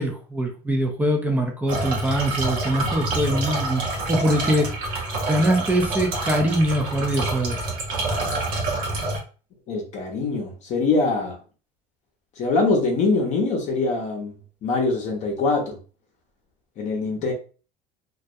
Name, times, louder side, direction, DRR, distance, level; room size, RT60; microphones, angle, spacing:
voice 1, 0.0-4.7 5.2-7.6, right 1 dB, 10° right, 0.4 m, -23 dB
sound 1, 1.7-9.2, right 2 dB, 55° right, 0.8 m, -27 dB
voice 2, 9.7-11.4 12.4-14.3 14.6-15.8 16.8-17.3, left 3 dB, 45° left, 0.7 m, -23 dB
2.3 x 2.1 x 2.6 m
cardioid pair, 135°, 17 cm